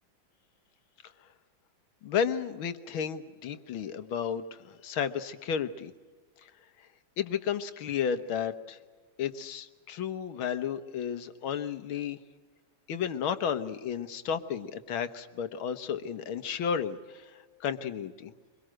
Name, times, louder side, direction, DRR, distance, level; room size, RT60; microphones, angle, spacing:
voice 1, 2.0-5.9 7.2-8.8 9.2-12.2 12.9-17.3 17.6-18.3, left 7 dB, 85° left, 11 dB, 2.0 m, -32 dB
24.5 x 22.5 x 7.7 m, 1.4 s
omnidirectional pair, 2.2 m